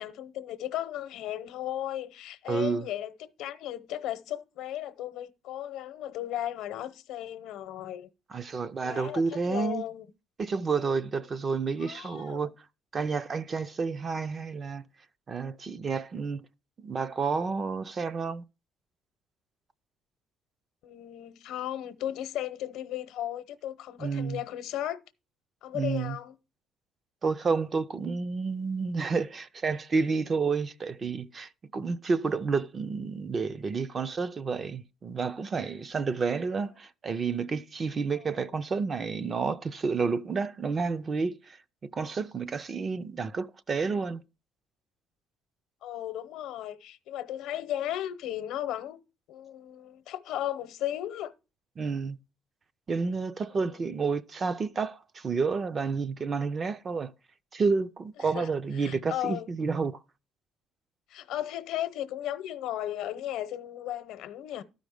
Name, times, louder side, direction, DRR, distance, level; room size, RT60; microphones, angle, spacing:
voice 1, 0.0-8.1 8.8-10.1 11.8-12.5 20.8-25.0 25.6-26.4 38.4-38.5 45.8-49.0 49.3-51.3 53.5-53.9 58.2-59.5 61.1-64.6, left 12 dB, 75° left, 0.8 m, -35 dB
voice 2, 2.5-2.8 8.3-9.8 10.4-12.5 12.9-14.8 15.3-16.5 16.8-18.4 24.0-24.4 25.7-26.2 27.2-41.6 41.8-44.2 51.8-52.2 52.9-57.1 57.5-59.9, right 4 dB, 30° right, 0.4 m, -30 dB
12.5 x 5.2 x 4.9 m
cardioid pair, 150°, 0 cm